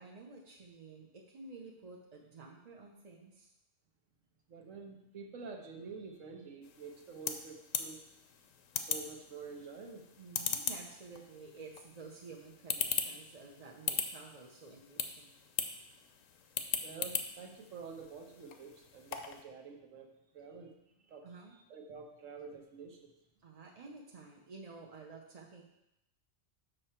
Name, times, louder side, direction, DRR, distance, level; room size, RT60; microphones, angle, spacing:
voice 1, 0.0-3.5 10.2-15.4 21.2-21.6 23.4-25.6, right 4 dB, 40° right, -1 dB, 0.7 m, -51 dB
voice 2, 4.5-8.0 8.8-10.1 16.8-20.1 20.3-20.7 21.0-23.1, right 5 dB, 85° right, 3 dB, 1.4 m, -48 dB
sound 1, 6.6-19.4, left 7 dB, 90° left, 1.0 m, -40 dB
6.6 x 6.0 x 4.4 m, 0.86 s
omnidirectional pair, 1.3 m